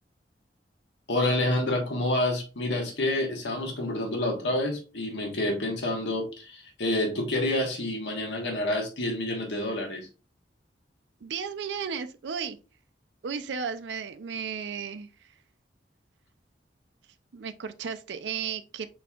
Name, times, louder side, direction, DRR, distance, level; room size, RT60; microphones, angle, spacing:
voice 1, 1.1-10.1, left 1 dB, 90° left, 1.3 m, -28 dB
voice 2, 11.2-12.6 13.2-15.3 17.3-18.9, right 6 dB, 85° right, 0.4 m, -34 dB
5.4 x 4.3 x 2.3 m
head